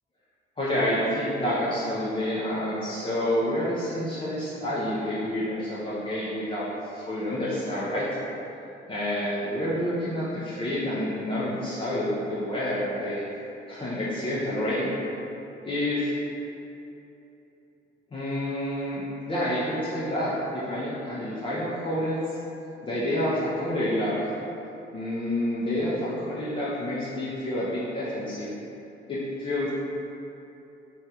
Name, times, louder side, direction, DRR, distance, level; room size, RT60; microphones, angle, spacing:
voice 1, 0.6-8.1 8.9-13.2 13.7-14.9 15.6-16.1 18.1-22.2 22.8-24.3 24.9-28.5 29.1-29.7, left 1 dB, 25° left, -9 dB, 0.5 m, -28 dB
3.3 x 2.3 x 2.8 m, 2.9 s
cardioid pair, 90°, 20 cm